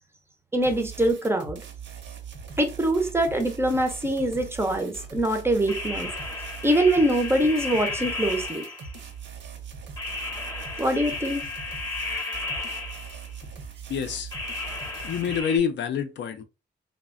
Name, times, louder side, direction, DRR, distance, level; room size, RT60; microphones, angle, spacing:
voice 1, 0.5-1.6 2.6-6.1 6.6-8.7 10.8-11.4, right 1 dB, 15° right, 0.4 m, -24 dB
sound 1, 0.6-15.4, right 6 dB, 85° right, 0.7 m, -41 dB
sound 2, 5.7-9.1 10.0-13.4 14.3-15.6, left 3 dB, 20° left, 0.7 m, -33 dB
voice 2, 13.9-14.3 15.0-16.4, left 7 dB, 85° left, 0.5 m, -27 dB
3.2 x 2.1 x 2.4 m
wide cardioid pair, 155°, 18 cm